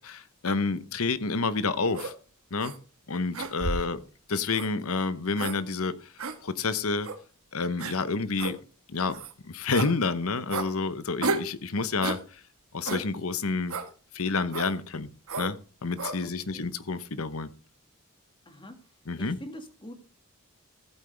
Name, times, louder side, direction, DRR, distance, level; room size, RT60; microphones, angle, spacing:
voice 1, 0.0-2.1 2.5-2.7 3.1-4.0 4.3-6.1 6.4-7.1 7.5-8.6 8.9-12.4 12.7-13.8 14.1-15.1 15.4-17.5 19.1-19.4, left 4 dB, 75° left, 14 dB, 1.0 m, -29 dB
sound 1, 1.9-2.1 2.6-2.8 3.3-3.9 4.5-4.7 5.3-5.6 6.2-6.4 7.0-7.2 7.8-8.0 8.4-8.5 9.1-9.3 9.7-9.9 10.5-10.7 11.2-11.5 12.0-12.2 12.9-13.1 13.7-13.9 14.5-14.7 15.3-15.5 16.0-16.2, right 3 dB, 70° right, 1.4 m, -32 dB
voice 2, 18.5-18.8 19.2-19.9, equal, 20° left, 6 dB, 2.0 m, -44 dB
14.5 x 8.7 x 3.4 m, 0.36 s
head